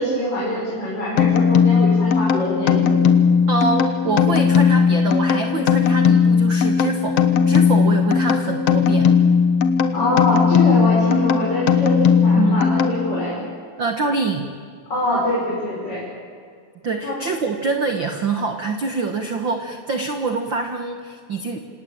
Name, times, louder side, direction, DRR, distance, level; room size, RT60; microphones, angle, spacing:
voice 1, 0.0-3.0 9.9-13.5 14.9-16.0 17.0-17.2, left 1 dB, 25° left, -7 dB, 6.5 m, -24 dB
sound 1, 1.2-13.3, left 6 dB, 60° left, 1.7 m, -17 dB
voice 2, 3.5-9.2 12.3-12.7 13.8-14.5 16.8-21.6, right 4 dB, 65° right, 6 dB, 1.1 m, -25 dB
27.5 x 18.0 x 8.9 m, 2.1 s
omnidirectional pair, 4.5 m